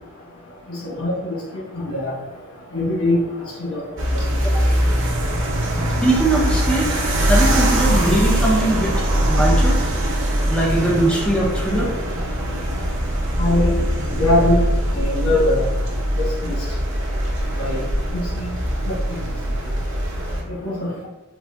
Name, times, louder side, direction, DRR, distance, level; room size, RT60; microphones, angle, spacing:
voice 1, 2.7-3.2 3.7-3.8 13.4-13.7 14.2-14.6 14.9-15.6 16.2-16.5 17.6-17.8 18.1-18.5 20.6-21.1, left 2 dB, 80° left, -5 dB, 1.1 m, -21 dB
sound 1, 4.0-20.4, equal, 60° right, 0.7 m, -21 dB
voice 2, 6.0-7.0 7.3-9.8 10.5-11.9, right 2 dB, 5° left, -4 dB, 0.5 m, -21 dB
3.7 x 2.5 x 2.2 m, 1.1 s
head